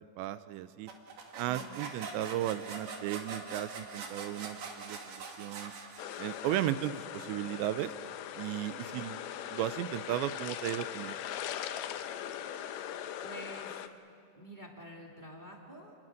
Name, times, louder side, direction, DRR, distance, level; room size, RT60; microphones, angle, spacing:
voice 1, 0.2-0.9 1.4-5.7 6.2-7.9 8.4-9.2 9.5-11.2, right 13 dB, 85° right, 13 dB, 3.0 m, -35 dB
sound 1, 0.9-6.5, right 4 dB, 65° right, 4.1 m, -43 dB
sound 2, 6.0-13.9, left 10 dB, 75° left, 2.5 m, -40 dB
voice 2, 13.2-13.8 14.3-15.9, equal, 15° right, -1 dB, 1.6 m, -47 dB
30.0 x 22.0 x 6.5 m, 2.5 s
omnidirectional pair, 5.1 m